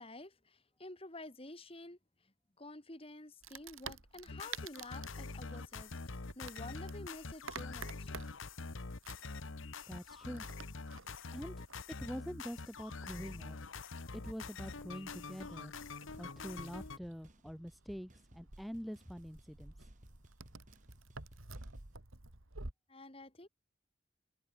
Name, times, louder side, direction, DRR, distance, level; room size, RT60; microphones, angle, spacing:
voice 1, 0.0-8.1 22.9-23.5, left 2 dB, 25° left, 2.8 m, -50 dB
Wood, 3.4-22.7, right 4 dB, 80° right, 2.5 m, -52 dB
sound 1, 4.3-17.0, left 3 dB, 70° left, 1.2 m, -45 dB
voice 2, 9.9-10.5 11.3-11.5 12.0-13.6 14.1-15.7 16.2-19.9, equal, ahead, 0.8 m, -45 dB
sound 2, 15.1-15.2 15.5-15.9 16.1-22.0, equal, 35° right, 6.5 m, -63 dB
head